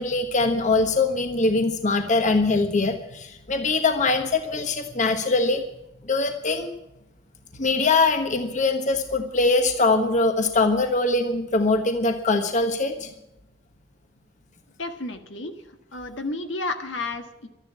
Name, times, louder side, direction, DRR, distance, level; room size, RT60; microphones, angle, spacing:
voice 1, 0.0-5.6 6.0-6.7 7.6-13.1, left 3 dB, 40° left, 6 dB, 1.3 m, -22 dB
voice 2, 14.8-15.5 15.9-17.5, left 2 dB, 70° left, 6 dB, 1.6 m, -31 dB
13.0 x 10.5 x 8.5 m, 0.87 s
head